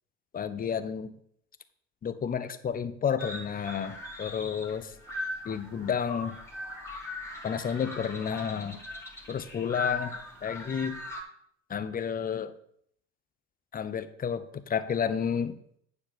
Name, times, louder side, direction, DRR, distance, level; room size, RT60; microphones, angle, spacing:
voice 1, 0.3-1.1 2.0-4.9 5.4-6.3 7.4-8.8 9.3-10.1 10.4-11.0 11.7-12.5 13.7-15.6, left 7 dB, 25° left, 12 dB, 0.8 m, -31 dB
sound 1, 3.2-11.2, left 2 dB, 5° left, 2.7 m, -39 dB
9.6 x 4.5 x 6.8 m, 0.67 s
figure-of-eight pair, 65°, 38 cm